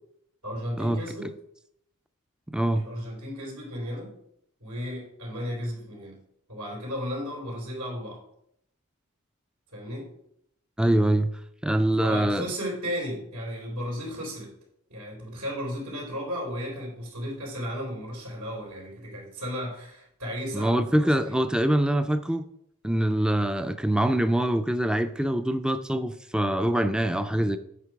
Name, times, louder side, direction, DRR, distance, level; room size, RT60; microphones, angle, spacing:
voice 1, 0.4-1.3 2.7-4.1 4.6-6.2 6.5-8.2 9.7-10.1 12.0-14.5 14.9-21.4, equal, 85° right, -4 dB, 3.7 m, -34 dB
voice 2, 2.5-2.9 10.8-11.3 11.6-12.5 20.5-22.5 22.8-27.6, right 1 dB, 5° right, 10 dB, 0.3 m, -24 dB
8.4 x 5.7 x 4.6 m, 0.74 s
head